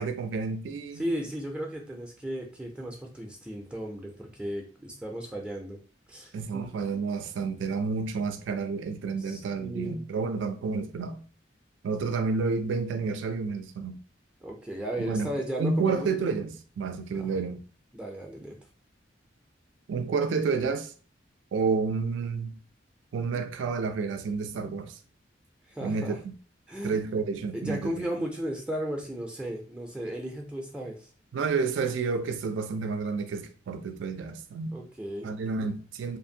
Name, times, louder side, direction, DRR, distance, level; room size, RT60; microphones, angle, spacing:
voice 1, 0.0-1.0 6.3-11.2 11.8-14.0 15.0-15.3 15.6-17.6 19.9-20.9 21.5-22.6 23.1-25.0 25.8-26.3 26.8-28.0 31.3-34.8 35.2-36.2, right 4 dB, 85° right, 0.3 m, -30 dB
voice 2, 1.0-5.8 6.1-6.7 9.3-10.0 14.4-16.2 17.1-17.4 17.9-18.6 25.7-26.2 26.7-27.0 27.5-31.1 34.7-35.3 35.6-35.7, right 1 dB, 5° right, 0.4 m, -35 dB
2.5 x 2.5 x 2.7 m
head